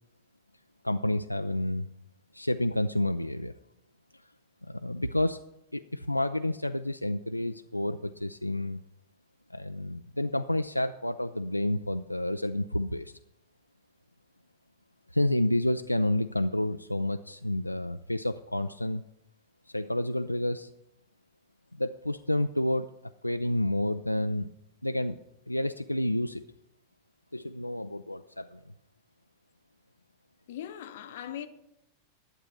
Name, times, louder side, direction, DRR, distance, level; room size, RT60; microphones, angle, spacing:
voice 1, 0.8-1.9 2.3-3.5 4.7-5.4 5.7-8.8 9.5-13.2 15.1-19.0 19.7-20.7 21.7-24.5 24.8-25.2 25.5-26.4 27.3-28.6, left 1 dB, 85° left, 0.3 m, -29 dB
voice 2, 30.5-31.5, left 10 dB, 55° left, 0.8 m, -39 dB
11.5 x 7.8 x 5.9 m
figure-of-eight pair, 90°, 0 cm